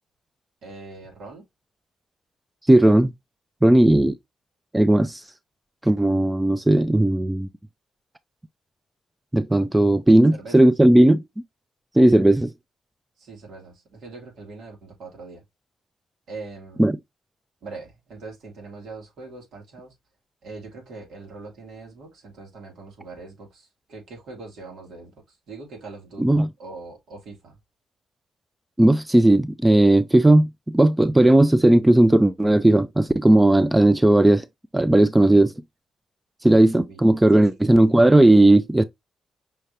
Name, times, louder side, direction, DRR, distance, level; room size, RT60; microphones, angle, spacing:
voice 1, 0.6-1.4 10.3-10.7 13.2-15.4 16.3-16.8 17.6-19.9 20.4-27.6 36.9-37.0 37.3-38.0, right 3 dB, 75° right, 2.6 m, -42 dB
voice 2, 2.7-3.1 3.6-4.2 4.7-5.2 5.8-7.5 9.3-11.2 12.0-12.5 16.8-17.0 26.2-26.5 28.8-34.4 34.7-35.5 36.4-38.8, right 1 dB, 10° right, 0.3 m, -16 dB
5.6 x 3.3 x 2.6 m
cardioid pair, 125°, 0 cm